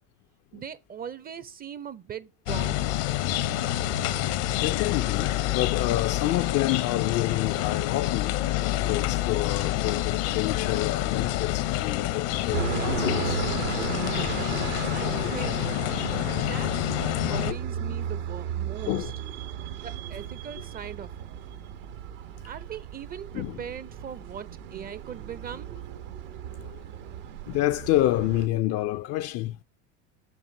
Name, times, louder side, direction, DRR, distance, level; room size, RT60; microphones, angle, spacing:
voice 1, 0.5-3.1 14.9-15.7 16.3-19.1 19.8-21.3 22.4-25.7, right 8 dB, 25° right, 0.5 m, -40 dB
sound 1, 2.5-17.5, left 14 dB, 65° left, 0.8 m, -27 dB
voice 2, 4.6-8.3 8.8-13.4 14.3-14.4 15.2-15.4 17.8-18.0 18.9-19.1 23.3-23.6 26.6-26.8 27.5-29.6, left 15 dB, 40° left, 0.4 m, -28 dB
sound 2, 12.5-28.5, right 9 dB, 75° right, 1.0 m, -35 dB
6.4 x 6.0 x 2.6 m
hypercardioid pair, 90°, 38 cm